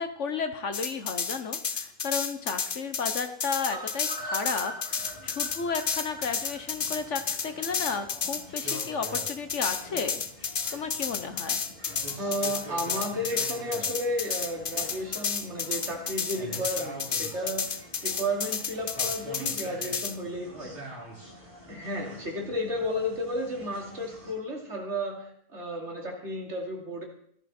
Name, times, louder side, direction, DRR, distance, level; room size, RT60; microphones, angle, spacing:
voice 1, 0.0-10.2 10.7-11.7, left 5 dB, 60° left, 9 dB, 1.3 m, -33 dB
sound 1, 0.7-20.1, left 6 dB, 40° left, 1.0 m, -31 dB
sound 2, 3.7-7.7 8.0-8.1 8.4-8.5 8.8-8.9, right 1 dB, 5° left, 5.1 m, -41 dB
sound 3, 4.9-24.3, equal, 30° right, 8.0 m, -46 dB
voice 2, 12.2-20.8 21.7-27.0, equal, 50° right, 1 dB, 3.1 m, -33 dB
15.5 x 13.5 x 4.4 m, 0.63 s
omnidirectional pair, 1.5 m